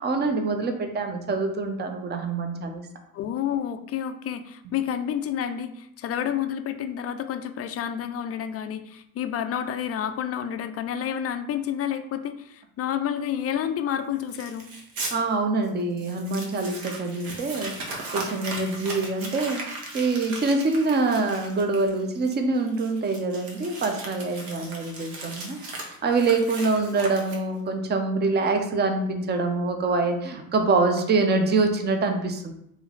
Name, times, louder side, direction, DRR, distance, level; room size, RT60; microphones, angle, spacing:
voice 1, 0.0-2.9 15.1-17.8 18.1-19.6 19.9-25.6 26.0-32.5, right 3 dB, 25° right, 5 dB, 0.6 m, -25 dB
voice 2, 3.1-14.7, left 9 dB, 35° left, 9 dB, 0.4 m, -29 dB
Crumpling crinkling, 14.3-15.1 15.6-15.7 16.0-27.7, right 2 dB, 55° right, 1.2 m, -37 dB
3.1 x 3.1 x 3.8 m, 0.74 s
hypercardioid pair, 75°, 43 cm